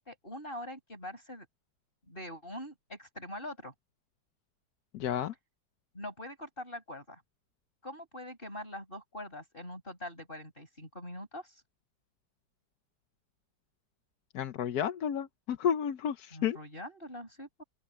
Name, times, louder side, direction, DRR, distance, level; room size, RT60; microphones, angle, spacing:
voice 1, 0.0-1.5 2.1-3.7 5.9-7.2 7.8-11.6 16.3-17.6, left 1 dB, 30° left, 5.9 m, -43 dB
voice 2, 4.9-5.3 14.3-16.6, left 9 dB, 65° left, 1.3 m, -31 dB
open air
omnidirectional pair, 2.0 m